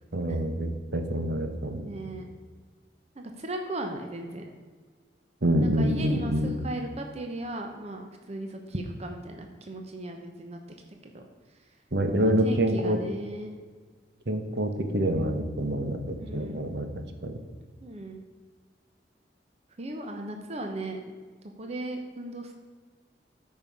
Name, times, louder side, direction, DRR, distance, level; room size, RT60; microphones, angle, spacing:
voice 1, 0.1-1.9 5.4-6.5 11.9-13.0 14.3-17.4, right 1 dB, 65° right, 6 dB, 1.1 m, -27 dB
voice 2, 1.8-2.3 3.2-4.5 5.6-10.6 11.1-11.2 12.1-13.5 16.2-16.7 17.8-18.2 19.8-21.0 21.6-22.5, right 1 dB, 35° right, 3 dB, 0.9 m, -36 dB
13.0 x 5.5 x 5.4 m, 1.5 s
head